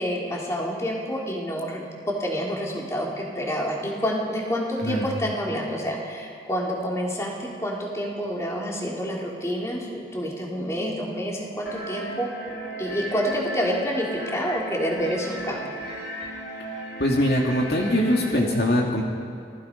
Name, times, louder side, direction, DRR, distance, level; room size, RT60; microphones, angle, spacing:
voice 1, 0.0-12.3 12.8-15.8, equal, 15° left, -2 dB, 3.6 m, -28 dB
sound 1, 11.7-18.3, equal, 80° left, 3.6 m, -36 dB
voice 2, 17.0-19.0, equal, 60° left, -1 dB, 2.6 m, -22 dB
28.5 x 20.0 x 5.4 m, 2.3 s
head